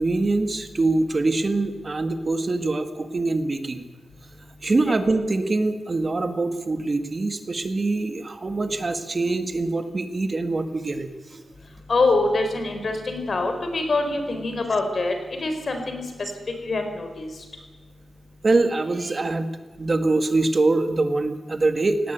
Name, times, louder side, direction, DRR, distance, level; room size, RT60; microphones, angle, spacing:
voice 1, 0.0-3.9 4.6-11.4 18.4-19.5 19.8-22.1, right 2 dB, 30° right, 8 dB, 1.7 m, -24 dB
voice 2, 11.9-16.0 16.6-17.3, left 3 dB, 45° left, 6 dB, 4.4 m, -24 dB
18.0 x 17.0 x 9.2 m, 1.3 s
wide cardioid pair, 160°, 0 cm